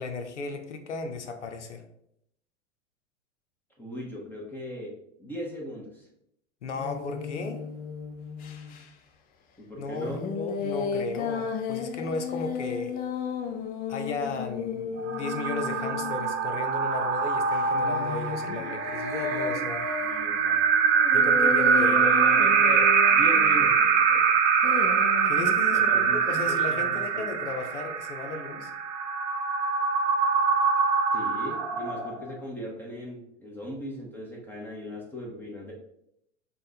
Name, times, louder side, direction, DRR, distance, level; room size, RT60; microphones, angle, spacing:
voice 1, 0.0-1.8 6.6-7.6 9.8-13.0 13.9-19.9 21.1-22.0 25.2-28.7, left 3 dB, 75° left, 6 dB, 0.8 m, -35 dB
voice 2, 3.8-4.9 5.2-6.1 9.7-10.3 19.9-20.6 21.8-24.3 25.7-27.3 31.1-35.7, equal, 5° left, -3 dB, 1.2 m, -38 dB
sound 1, 6.7-8.8 10.0-16.8 17.5-23.9 24.6-25.6, left 6 dB, 25° left, 0.6 m, -34 dB
sound 2, 15.0-32.3, right 6 dB, 40° right, 0.8 m, -24 dB
4.9 x 2.4 x 4.1 m, 0.76 s
figure-of-eight pair, 95°, 36 cm